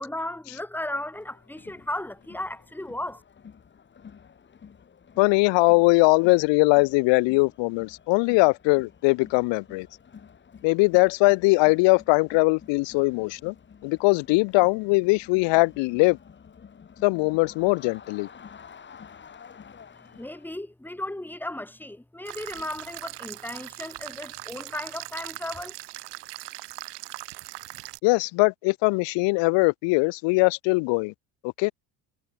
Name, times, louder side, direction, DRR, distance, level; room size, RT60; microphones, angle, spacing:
voice 1, 0.0-3.2 19.9-25.7, left 1 dB, 5° left, 4.2 m, -35 dB
Crowd, 1.1-20.6, left 7 dB, 25° left, 2.6 m, -50 dB
voice 2, 5.2-9.9 10.6-13.5 13.8-16.2 17.0-18.3 28.0-31.1 31.6-31.7, left 27 dB, 85° left, 0.6 m, -21 dB
sound 1, 22.3-28.0, right 20 dB, 75° right, 1.5 m, -40 dB
cardioid pair, 160°, 43 cm